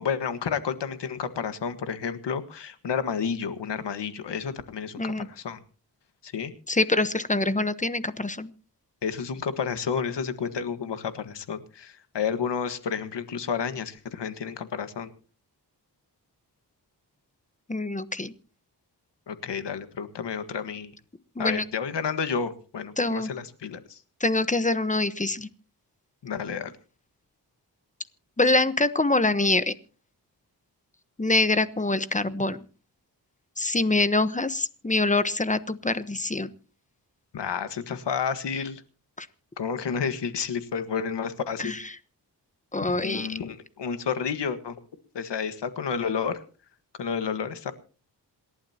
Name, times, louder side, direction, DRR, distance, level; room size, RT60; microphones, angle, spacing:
voice 1, 0.0-5.6 6.2-6.5 9.0-15.1 19.3-20.9 21.4-24.0 26.2-26.7 37.3-38.8 39.6-41.7 43.0-44.8 45.2-46.4 47.0-47.7, left 6 dB, 85° left, 10 dB, 1.7 m, -31 dB
voice 2, 6.7-8.5 17.7-18.3 21.4-21.6 23.0-23.3 24.2-25.5 28.4-29.7 31.2-32.6 33.6-36.5 39.2-39.3 41.6-41.8 42.7-43.4, left 2 dB, 20° left, 14 dB, 1.1 m, -25 dB
27.5 x 11.5 x 2.9 m, 0.37 s
wide cardioid pair, 80°, 41 cm